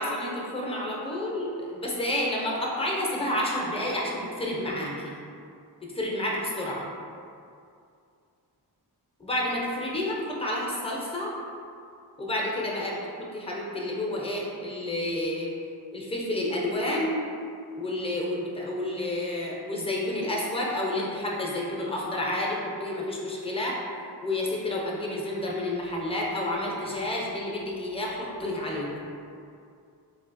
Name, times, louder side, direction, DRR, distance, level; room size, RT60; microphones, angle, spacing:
voice 1, 0.0-5.2 5.8-6.9 9.2-11.3 12.2-13.0 13.3-15.5 15.9-17.2 17.8-23.8 24.2-29.0, left 1 dB, 15° left, -3 dB, 0.5 m, -30 dB
3.7 x 2.2 x 2.5 m, 2.4 s
wide cardioid pair, 85°, 42 cm